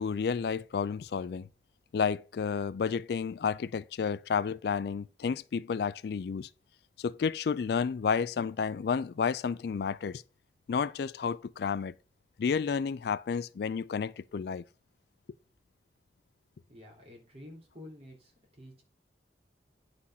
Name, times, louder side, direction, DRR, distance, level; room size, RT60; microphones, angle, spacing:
voice 1, 0.0-1.5 1.9-6.5 7.0-10.2 10.7-11.9 12.4-14.6, left 6 dB, 60° left, 0.3 m, -31 dB
voice 2, 16.7-18.8, left 1 dB, 35° right, 3.2 m, -50 dB
9.7 x 4.1 x 5.7 m
head